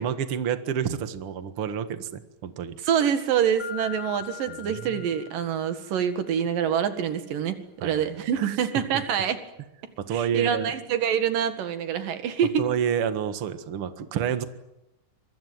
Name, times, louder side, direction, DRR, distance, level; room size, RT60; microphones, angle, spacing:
voice 1, 0.0-2.8 4.5-5.1 7.8-8.6 10.0-10.7 12.6-14.4, right 8 dB, 50° right, 9 dB, 2.2 m, -29 dB
voice 2, 2.8-9.4 10.1-12.7, right 8 dB, 90° right, 9 dB, 3.5 m, -26 dB
Mallet percussion, 3.6-6.2, left 10 dB, 5° right, 2.2 m, -41 dB
24.5 x 23.5 x 9.4 m, 0.92 s
omnidirectional pair, 3.8 m